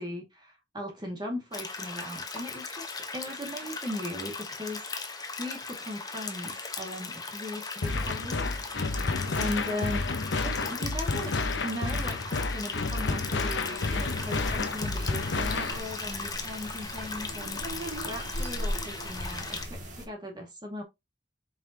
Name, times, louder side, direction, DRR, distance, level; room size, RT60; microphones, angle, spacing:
voice 1, 0.0-4.8 5.4-8.5 9.4-10.1 10.4-11.4 11.6-17.6 18.0-20.8, left 1 dB, 25° right, 2.0 m, -38 dB
sound 1, 1.5-19.7, left 4 dB, 20° left, 1.1 m, -38 dB
sound 2, 7.8-15.8, left 3 dB, 75° left, 0.8 m, -30 dB
sound 3, 13.8-20.1, equal, 40° right, 2.4 m, -38 dB
7.1 x 5.4 x 2.8 m
head